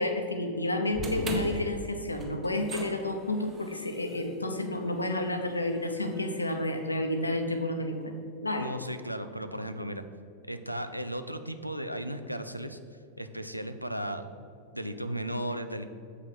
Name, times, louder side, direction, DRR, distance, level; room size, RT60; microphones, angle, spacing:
voice 1, 0.0-8.1 8.4-8.7, left 1 dB, 80° left, 5 dB, 0.9 m, -30 dB
sound 1, 0.9-7.2, right 1 dB, 25° right, 1.5 m, -41 dB
voice 2, 8.6-10.0 10.5-12.8 13.2-14.3 14.7-15.8, right 1 dB, 90° right, 9 dB, 0.5 m, -35 dB
7.6 x 6.0 x 6.1 m, 2.5 s
figure-of-eight pair, 90°, 0 cm